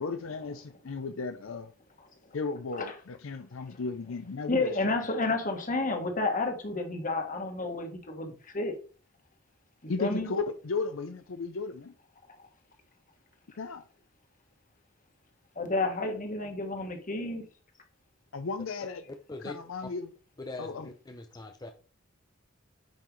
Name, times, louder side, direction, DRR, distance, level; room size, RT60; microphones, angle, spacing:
voice 1, 0.0-1.7 2.3-4.7 9.9-11.9 13.6-13.8 18.3-19.0 19.4-20.1 20.6-20.9, left 4 dB, 70° left, 0.6 m, -35 dB
voice 2, 4.5-8.7 9.8-10.3 15.6-17.4, left 2 dB, 40° left, 1.7 m, -31 dB
voice 3, 19.1-19.9 20.4-21.7, left 2 dB, 20° left, 0.6 m, -42 dB
8.9 x 5.7 x 3.1 m
head